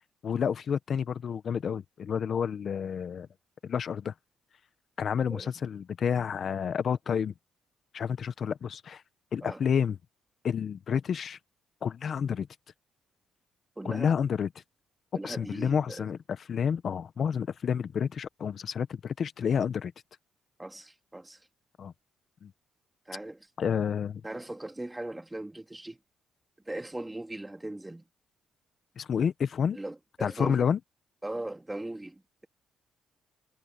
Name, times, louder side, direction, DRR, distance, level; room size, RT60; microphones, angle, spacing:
voice 1, 0.2-3.3 3.6-4.1 5.0-7.3 7.9-9.0 9.3-10.0 10.4-11.4 11.8-12.5 13.8-14.5 15.2-19.9 21.8-21.9 22.4-22.5 23.6-24.2 29.0-29.8 30.2-30.8, left 7 dB, 55° left, 0.8 m, -29 dB
voice 2, 13.8-14.1 15.1-16.1 20.6-21.4 23.1-23.4 24.2-26.0 26.7-28.0 29.7-30.7 31.2-32.5, right 1 dB, 10° right, 2.1 m, -39 dB
cardioid pair, 90°, 0 cm